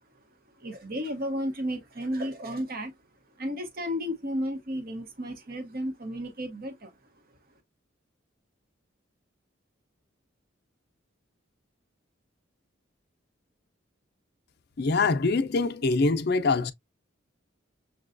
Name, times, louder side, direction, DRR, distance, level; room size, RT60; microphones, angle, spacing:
voice 1, 0.6-2.9 3.4-6.9, equal, 50° right, 0.9 m, -33 dB
voice 2, 14.8-16.7, left 3 dB, 55° left, 0.5 m, -24 dB
6.5 x 2.3 x 2.5 m
head